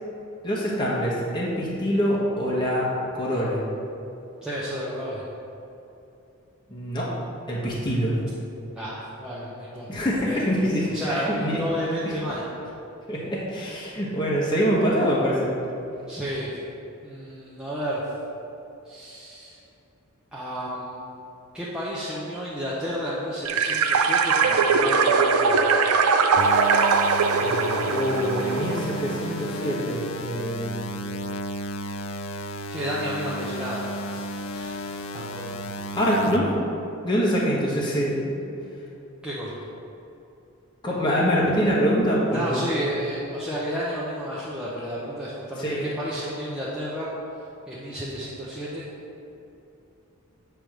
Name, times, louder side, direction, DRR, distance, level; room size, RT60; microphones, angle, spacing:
voice 1, 0.4-3.6 6.7-7.1 7.5-8.1 9.9-11.6 12.0-12.2 13.1-15.6 27.4-30.9 36.0-36.6 37.0-38.4 40.8-42.7 45.6-45.9, equal, 20° left, -6 dB, 1.0 m, -25 dB
voice 2, 4.4-5.2 8.7-10.4 10.9-12.4 16.1-16.5 17.0-18.0 18.8-19.6 20.3-21.0 21.5-25.7 32.7-33.8 34.1-34.2 34.5-34.8 35.1-35.6 39.2-39.6 42.3-47.1 47.7-48.9, equal, 5° right, -9 dB, 0.8 m, -32 dB
sound 1, 23.4-29.2, right 5 dB, 85° right, 0.5 m, -21 dB
sound 2, 26.4-36.4, equal, 75° left, 0.5 m, -33 dB
7.5 x 3.4 x 6.2 m, 2.8 s
head